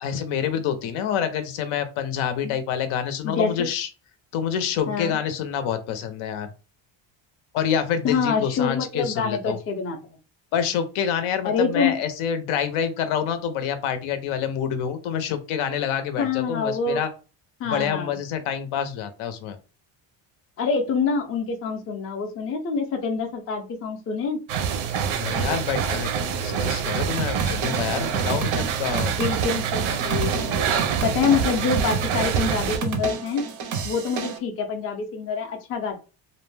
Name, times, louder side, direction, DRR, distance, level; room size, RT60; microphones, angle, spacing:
voice 1, 0.0-3.9 4.3-6.5 7.5-9.6 10.5-17.1 17.6-19.6 25.1-29.1, left 8 dB, 90° left, 9 dB, 0.7 m, -27 dB
voice 2, 3.2-3.7 4.9-5.2 8.0-10.0 11.4-12.0 16.2-17.0 17.6-18.2 20.6-24.4 29.0-30.7 31.0-33.4 33.8-36.0, left 5 dB, 30° left, 4 dB, 0.4 m, -26 dB
sound 1, 24.5-32.8, right 7 dB, 85° right, 0.6 m, -26 dB
sound 2, 27.2-34.4, right 5 dB, 40° right, 0.4 m, -31 dB
2.5 x 2.1 x 3.2 m, 0.34 s
cardioid pair, 160°, 48 cm